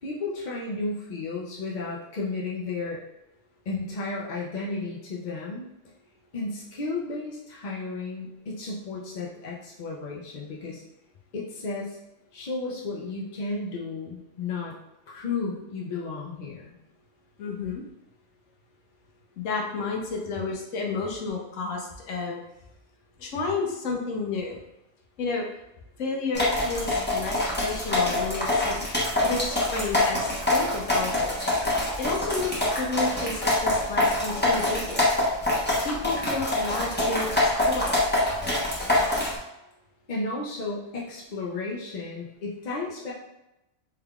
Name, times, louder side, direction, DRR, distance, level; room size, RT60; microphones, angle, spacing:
voice 1, 0.0-3.0 3.7-5.7 6.3-10.8 11.3-12.0 12.3-14.8 15.1-16.7 40.1-43.1, left 3 dB, 50° left, -4 dB, 0.6 m, -33 dB
voice 2, 17.4-17.8 19.4-22.4 23.2-24.6 25.2-25.5 26.0-28.8 29.2-31.3 32.0-35.0 35.8-38.0, left 3 dB, 90° left, 0 dB, 1.1 m, -31 dB
sound 1, 26.3-39.4, left 1 dB, 10° left, 0.7 m, -25 dB
3.5 x 3.5 x 2.3 m, 0.91 s
omnidirectional pair, 1.3 m